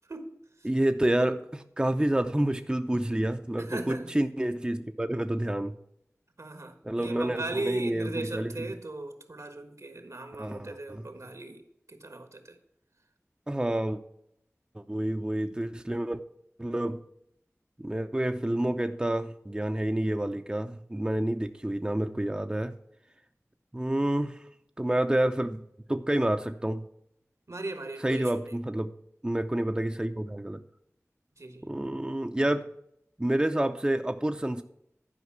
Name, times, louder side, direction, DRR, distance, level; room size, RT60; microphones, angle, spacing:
voice 1, 0.6-5.7 6.8-8.5 10.4-11.1 13.5-14.0 14.7-16.2 16.6-17.0 17.8-22.7 23.7-24.4 24.8-25.6 25.9-26.8 28.0-28.9 29.2-30.6 31.6-32.7 33.2-34.6, right 1 dB, 15° right, 7 dB, 0.5 m, -28 dB
voice 2, 3.6-4.1 6.4-12.6 27.5-28.6 31.4-31.7, right 2 dB, 70° right, 8 dB, 1.4 m, -38 dB
11.0 x 5.2 x 5.9 m, 0.77 s
wide cardioid pair, 55°, 5 cm